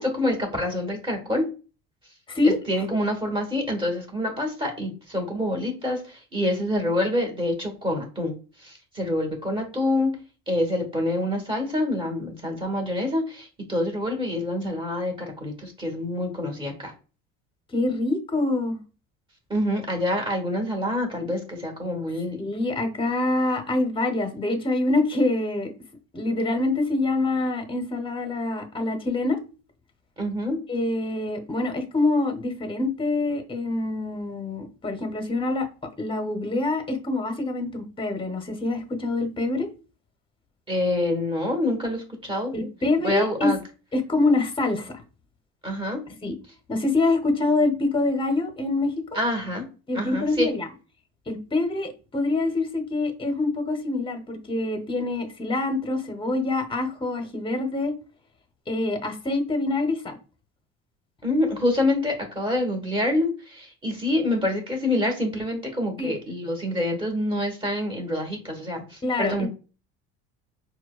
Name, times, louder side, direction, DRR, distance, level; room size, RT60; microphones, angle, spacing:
voice 1, 0.0-1.4 2.7-10.1 10.5-16.9 19.5-22.4 30.2-30.6 40.7-42.5 43.0-43.6 45.6-46.0 49.1-49.6 49.9-50.5 61.2-69.5, left 1 dB, 15° right, 1.3 m, -26 dB
voice 2, 17.7-18.8 22.4-25.7 26.1-29.4 30.7-35.7 36.0-39.7 42.5-43.5 43.9-45.0 46.2-46.3 46.7-49.0 49.9-50.7 51.3-57.9 58.7-60.2 66.0-66.1 69.0-69.5, left 2 dB, 15° left, 0.8 m, -25 dB
4.4 x 2.2 x 2.3 m
supercardioid pair, 100°, 30 cm